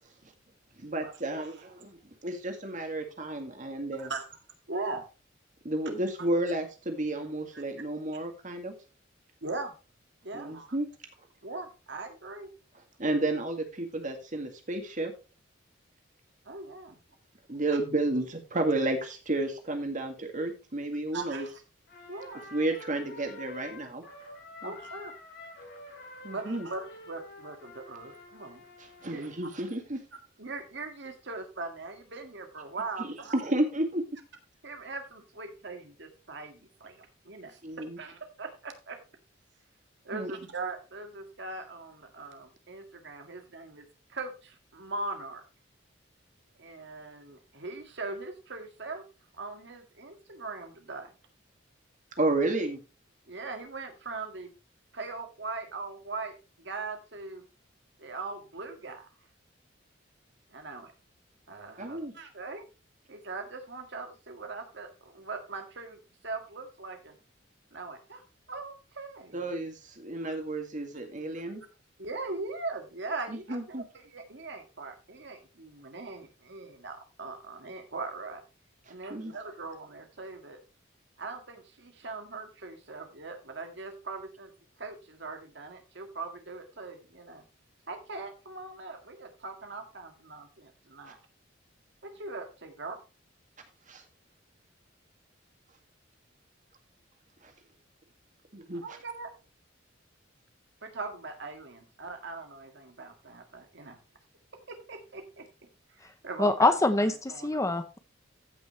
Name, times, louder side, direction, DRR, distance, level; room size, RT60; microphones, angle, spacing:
voice 1, 0.8-4.1 5.6-8.7 10.3-10.9 13.0-15.1 17.5-21.5 22.5-24.0 24.6-24.7 26.2-26.7 29.0-30.0 33.0-34.0 37.6-38.0 40.1-40.5 52.2-52.8 61.8-62.1 69.3-71.6 73.3-73.8 79.1-79.3 93.9-94.0 97.4-97.5 98.5-98.8, right 2 dB, 40° right, 5 dB, 2.0 m, -31 dB
voice 2, 3.9-4.3 4.7-5.0 7.5-7.6 9.4-9.7 10.2-10.8 11.4-12.5 16.5-17.0 17.7-17.8 21.1-21.5 22.1-22.5 24.6-25.1 26.3-28.6 29.0-29.3 30.4-33.4 34.6-39.0 40.0-45.4 46.6-49.0 49.4-51.1 53.3-54.5 54.9-57.4 58.0-59.1 60.5-60.9 61.5-62.6 63.1-66.0 66.2-67.2 67.7-68.2 68.5-69.5 72.0-78.4 78.9-80.6 81.2-84.5 84.8-87.4 87.9-91.2 92.0-93.0 98.8-99.3 100.8-104.0 104.7-105.5 106.0-107.7, right 3 dB, 65° right, 5 dB, 1.9 m, -40 dB
Trumpet, 21.9-29.4, left 2 dB, 60° left, 5.6 m, -48 dB
voice 3, 106.4-107.1 107.4-108.0, left 2 dB, 15° left, 10 dB, 0.7 m, -24 dB
14.5 x 6.2 x 3.1 m, 0.31 s
head